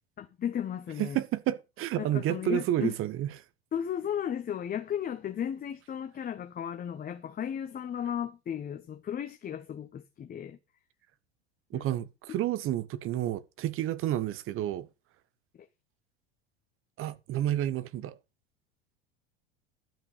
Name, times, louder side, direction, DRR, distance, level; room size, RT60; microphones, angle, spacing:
voice 1, 0.2-1.2 2.0-2.9 3.7-10.6 11.7-11.8, left 9 dB, 30° left, 1.1 m, -35 dB
voice 2, 1.0-3.3 11.7-14.9 17.0-18.2, right 12 dB, 45° right, 1.2 m, -30 dB
12.0 x 5.6 x 6.7 m
hypercardioid pair, 90°, 31 cm